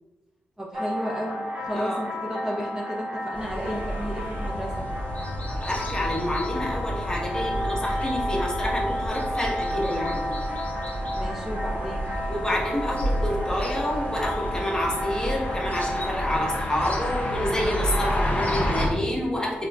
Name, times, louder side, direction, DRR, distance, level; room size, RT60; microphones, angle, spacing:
voice 1, 0.6-4.9 11.2-12.1, equal, 10° right, -5 dB, 0.6 m, -33 dB
sound 1, 0.7-17.6, equal, 55° right, 1.0 m, -32 dB
voice 2, 1.7-2.0 5.6-10.3 12.3-19.7, left 1 dB, 15° left, -3 dB, 1.0 m, -28 dB
sound 2, 3.3-18.9, equal, 35° left, 0.6 m, -31 dB
Car / Engine starting, 3.6-9.1, equal, 75° right, 0.8 m, -37 dB
3.6 x 2.5 x 2.2 m, 1.2 s
supercardioid pair, 45°, 4 cm